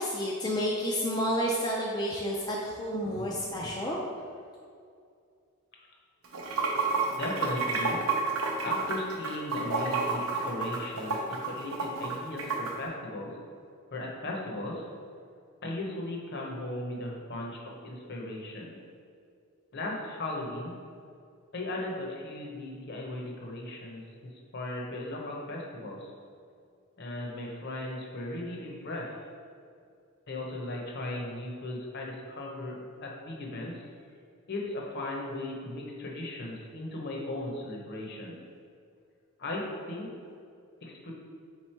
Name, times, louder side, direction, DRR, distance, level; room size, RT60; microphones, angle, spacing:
voice 1, 0.0-4.0, equal, 20° left, -4 dB, 0.3 m, -30 dB
Water / Sink (filling or washing), 6.2-12.7, right 4 dB, 80° right, 0.7 m, -30 dB
voice 2, 7.1-8.0 8.6-13.3 13.9-14.9 15.6-18.8 19.7-20.8 21.5-26.1 27.0-29.1 30.3-33.9 34.5-38.3 39.4-40.1 40.8-41.1, left 1 dB, 50° left, -1 dB, 0.8 m, -37 dB
4.0 x 3.1 x 4.3 m, 2.3 s
head